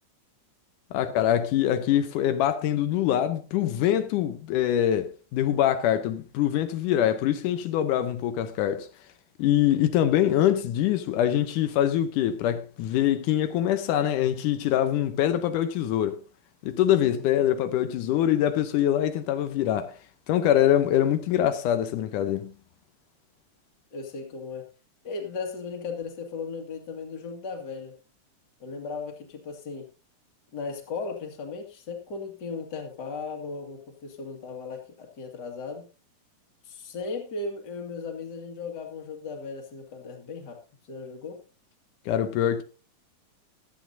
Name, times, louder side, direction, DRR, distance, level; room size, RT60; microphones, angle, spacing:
voice 1, 0.9-8.9 9.4-16.2 16.6-19.9 20.3-22.5 42.1-42.6, left 11 dB, 85° left, 2.4 m, -24 dB
voice 2, 17.1-17.5 23.9-24.7 25.0-28.0 28.6-29.9 30.5-35.9 36.6-40.6 40.9-41.4, left 4 dB, 35° left, 2.3 m, -36 dB
16.0 x 11.5 x 2.7 m
omnidirectional pair, 3.6 m